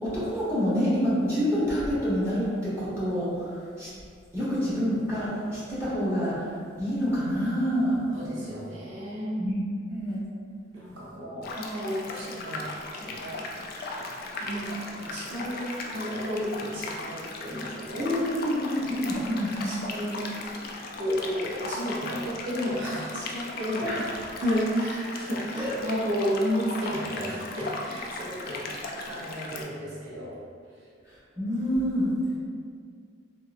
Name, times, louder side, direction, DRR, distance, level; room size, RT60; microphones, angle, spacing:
voice 1, 0.0-3.9 4.3-6.3 6.8-8.0 9.4-9.6 9.9-10.2 18.0-19.7 23.8-24.0 25.6-25.7 31.4-32.1, equal, 15° right, -11 dB, 1.0 m, -27 dB
voice 2, 8.1-9.4 10.7-12.7 13.0-13.5 14.4-15.6 15.9-18.1 18.8-18.9 19.3-20.2 21.0-23.9 24.4-30.3, equal, 85° right, -6 dB, 0.7 m, -32 dB
sound 1, 11.4-29.7, left 2 dB, 55° left, 0.4 m, -37 dB
3.7 x 2.7 x 2.5 m, 2.2 s
head